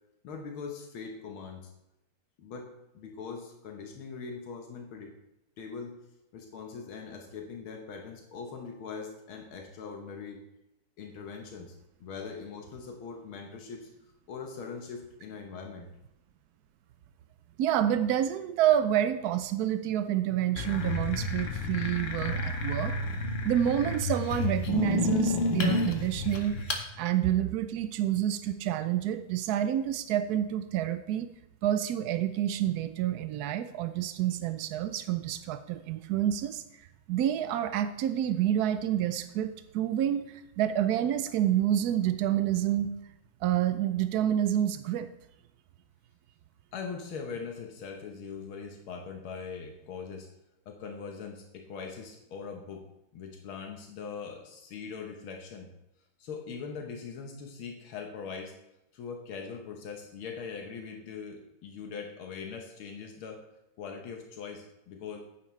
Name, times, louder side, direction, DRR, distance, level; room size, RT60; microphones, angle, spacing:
voice 1, 0.2-1.7 2.4-2.7 2.9-5.1 5.6-6.0 6.3-10.4 11.0-11.8 12.0-13.9 14.3-15.9 46.7-50.3 50.7-52.8 53.1-55.7 56.2-58.5 58.9-63.4 63.8-65.2, left 5 dB, 80° left, 3 dB, 1.9 m, -41 dB
voice 2, 17.6-22.9 23.4-26.6 27.0-31.3 31.6-36.6 37.1-42.9 43.4-45.1, right 11 dB, 90° right, 10 dB, 0.8 m, -28 dB
sound 1, 20.6-26.9, left 2 dB, 45° left, 1.1 m, -30 dB
11.0 x 9.3 x 3.2 m, 0.86 s
omnidirectional pair, 2.3 m